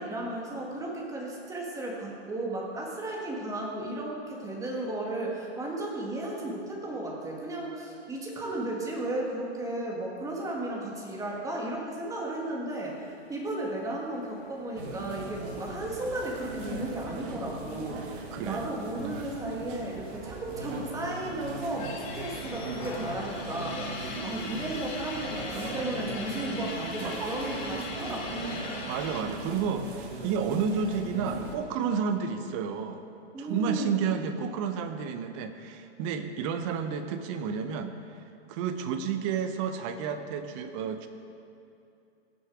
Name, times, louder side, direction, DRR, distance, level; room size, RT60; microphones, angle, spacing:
voice 1, 0.0-18.0 18.4-28.6 33.3-34.1, right 1 dB, 10° right, -2 dB, 1.6 m, -34 dB
sound 1, 14.3-19.4 19.7-19.8 20.0-21.0 21.4-29.2, left 3 dB, 40° left, 1.8 m, -42 dB
sound 2, 14.8-31.6, right 3 dB, 50° right, 1.6 m, -39 dB
voice 2, 18.3-18.7 19.0-19.2 28.9-33.1 33.4-38.2 38.5-41.1, right 6 dB, 30° right, 9 dB, 0.7 m, -31 dB
17.0 x 6.6 x 4.8 m, 2.6 s
hypercardioid pair, 145°, 34 cm